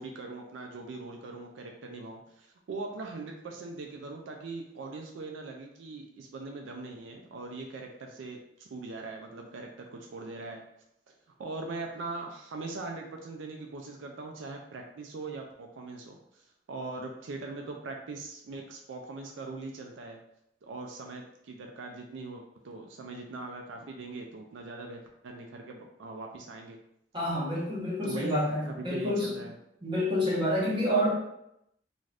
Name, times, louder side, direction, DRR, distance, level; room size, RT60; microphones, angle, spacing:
voice 1, 0.0-10.6 11.4-20.2 20.6-26.8 28.0-29.5, right 3 dB, 85° right, 2 dB, 0.4 m, -41 dB
voice 2, 27.1-29.3 29.8-31.1, equal, 25° right, -6 dB, 1.0 m, -28 dB
2.6 x 2.4 x 3.2 m, 0.80 s
head